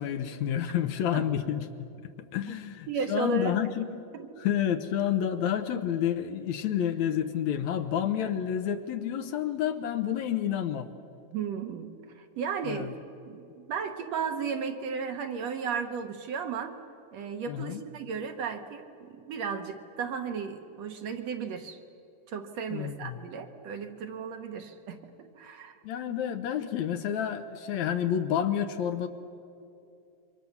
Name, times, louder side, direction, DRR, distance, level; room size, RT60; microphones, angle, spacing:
voice 1, 0.0-1.7 2.0-4.0 4.4-10.9 12.7-12.9 17.5-17.8 22.7-23.2 25.8-29.1, left 9 dB, 70° left, 9 dB, 2.0 m, -29 dB
voice 2, 2.9-3.5 4.1-4.3 11.3-12.9 13.3-16.8 17.1-21.8 22.3-25.8, right 6 dB, 65° right, 6 dB, 2.1 m, -34 dB
27.5 x 24.0 x 7.1 m, 2.6 s
omnidirectional pair, 3.6 m